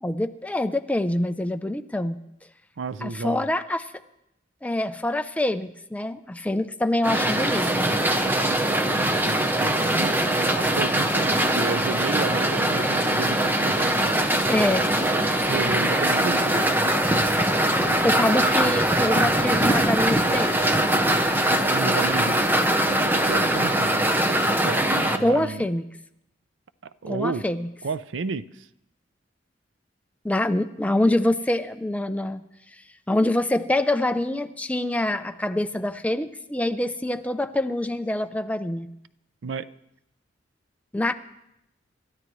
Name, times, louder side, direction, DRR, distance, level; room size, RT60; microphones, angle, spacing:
voice 1, 0.0-2.2 3.0-3.9 4.6-7.9 14.5-14.9 18.0-20.6 25.2-25.8 27.1-27.7 30.2-32.4 33.1-38.9 40.9-41.1, left 1 dB, 10° left, 0.5 m, -25 dB
voice 2, 2.8-3.4 8.9-10.3 10.6-14.4 15.5-16.7 21.7-22.4 23.2-23.9 24.6-25.7 26.8-27.4 27.8-28.7 39.4-39.7, right 4 dB, 85° right, 0.5 m, -32 dB
sound 1, 7.0-25.2, right 1 dB, 10° right, 0.8 m, -22 dB
27.0 x 13.0 x 3.2 m
head